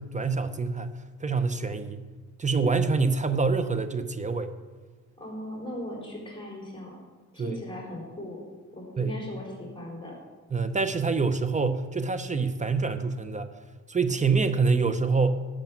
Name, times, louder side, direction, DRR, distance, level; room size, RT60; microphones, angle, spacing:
voice 1, 0.0-2.0 2.4-4.5 7.4-7.6 9.0-9.2 10.5-13.5 13.9-15.4, right 4 dB, 25° right, 11 dB, 0.8 m, -26 dB
voice 2, 5.2-7.0 7.3-8.4 8.7-10.2, left 1 dB, 15° left, -2 dB, 4.1 m, -38 dB
12.0 x 6.7 x 7.4 m, 1.4 s
cardioid pair, 90°, 30 cm